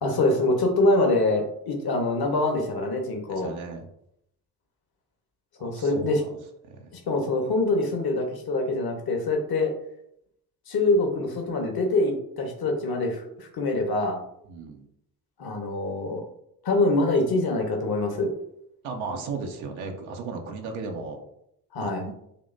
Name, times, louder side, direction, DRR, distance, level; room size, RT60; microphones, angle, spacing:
voice 1, 0.0-3.5 5.6-6.2 6.9-9.7 10.7-14.2 15.4-16.2 16.6-18.4 21.7-22.0, left 2 dB, 45° left, 2 dB, 1.4 m, -24 dB
voice 2, 3.3-3.9 5.6-6.4 6.7-6.9 14.5-14.9 18.8-21.2 21.8-22.1, right 4 dB, 70° right, 2 dB, 0.9 m, -35 dB
6.8 x 2.8 x 2.7 m, 0.74 s
hypercardioid pair, 45°, 49 cm